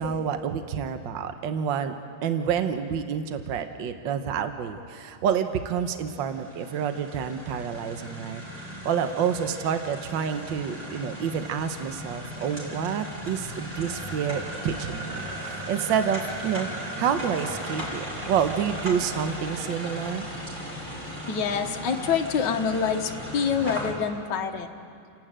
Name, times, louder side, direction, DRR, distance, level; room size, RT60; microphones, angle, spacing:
voice 1, 0.0-1.9 2.2-8.4 8.8-16.7 17.0-20.3, right 7 dB, 65° right, 8 dB, 1.6 m, -28 dB
sound 1, 5.9-23.9, equal, 25° right, 4.8 m, -37 dB
voice 2, 21.3-24.7, left 6 dB, 60° left, 3 dB, 1.7 m, -26 dB
30.0 x 11.5 x 8.8 m, 2.5 s
omnidirectional pair, 2.3 m